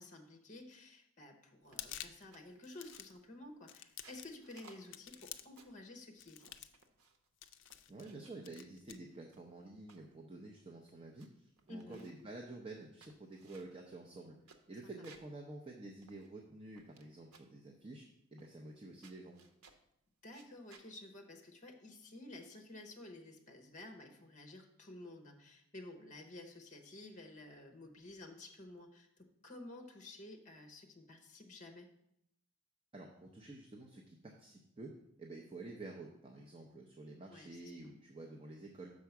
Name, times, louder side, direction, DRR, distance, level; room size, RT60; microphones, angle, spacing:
voice 1, 0.0-6.7 11.7-12.1 14.8-14.9 20.2-31.9 37.3-37.6, left 2 dB, 35° left, 4 dB, 0.9 m, -52 dB
sound 1, 1.6-2.3 2.6-3.2 3.7-4.4 4.9-5.6 6.2-6.8 7.4-8.1 8.4-9.0, left 11 dB, 55° left, 0.4 m, -49 dB
sound 2, 1.7-2.0 2.3-3.3 3.8-5.9 6.4-7.3 7.7-8.4 9.1-10.1 10.6-10.7 10.9-11.3 11.6-12.3 12.8-15.4 15.7-15.8 16.0-17.1 17.3-17.6 18.4-18.8 19.0-19.9 20.3-20.9, right 4 dB, 90° right, 0.8 m, -63 dB
voice 2, 7.9-14.3 14.7-18.0 18.3-19.4 32.9-34.9 35.2-38.9, right 2 dB, 25° right, 0 dB, 0.6 m, -50 dB
6.3 x 4.6 x 5.8 m, 0.78 s
head